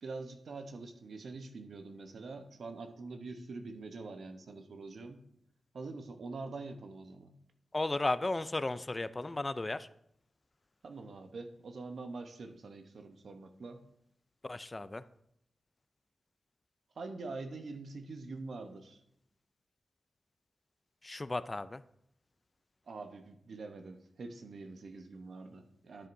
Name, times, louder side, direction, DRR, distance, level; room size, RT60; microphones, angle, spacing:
voice 1, 0.0-5.2 5.7-7.4 10.8-13.8 16.9-19.0 22.9-26.1, right 3 dB, 75° right, 7 dB, 0.9 m, -45 dB
voice 2, 7.7-9.9 14.5-15.0 21.0-21.8, left 2 dB, 30° left, 15 dB, 0.3 m, -34 dB
12.5 x 7.7 x 2.6 m, 0.73 s
cardioid pair, 65°, 0 cm